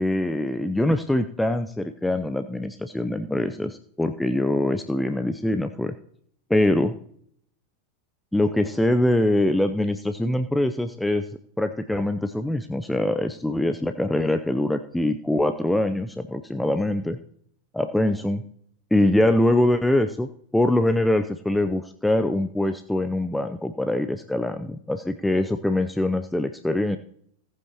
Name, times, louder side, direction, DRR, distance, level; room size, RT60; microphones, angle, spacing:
voice 1, 0.0-6.0 6.5-6.9 8.3-11.2 11.6-17.2 17.7-18.5 18.9-27.0, left 1 dB, 5° left, 9 dB, 0.6 m, -23 dB
17.5 x 8.2 x 2.9 m, 0.65 s
figure-of-eight pair, 90°, 0 cm